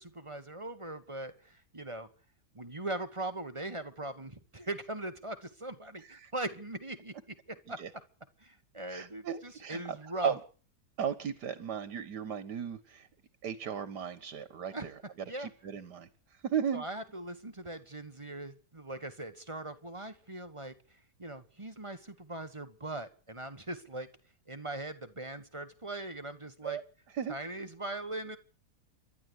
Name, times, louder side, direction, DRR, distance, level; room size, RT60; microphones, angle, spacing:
voice 1, 0.0-2.1 2.5-7.8 8.4-10.3 14.7-14.9 15.2-15.5 16.7-24.1 24.5-26.8 27.3-28.4, right 2 dB, 20° right, 8 dB, 1.5 m, -40 dB
voice 2, 8.9-10.4 11.0-13.1 13.4-15.0 15.4-16.9 26.6-26.8 27.1-27.4, right 7 dB, 80° right, 14 dB, 1.9 m, -36 dB
28.5 x 12.0 x 8.2 m, 0.43 s
omnidirectional pair, 1.7 m